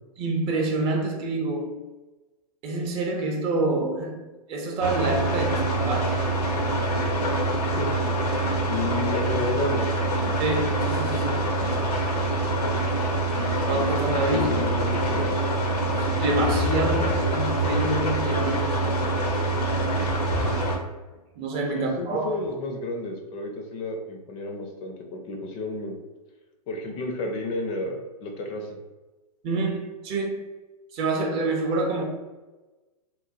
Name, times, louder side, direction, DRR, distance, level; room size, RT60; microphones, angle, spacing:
voice 1, 0.2-1.8 2.6-4.2 4.5-6.2 10.4-11.5 13.3-14.5 16.0-19.0 21.4-22.4 29.4-30.5 30.9-32.0, right 2 dB, 30° right, 0.5 m, -27 dB
sound 1, 4.8-20.8, right 2 dB, 85° left, 0.7 m, -25 dB
voice 2, 8.7-9.9 14.3-15.4 21.7-25.9 26.7-28.7, left 2 dB, 30° left, 0.4 m, -31 dB
3.0 x 2.0 x 2.5 m
hypercardioid pair, 115°, 20 cm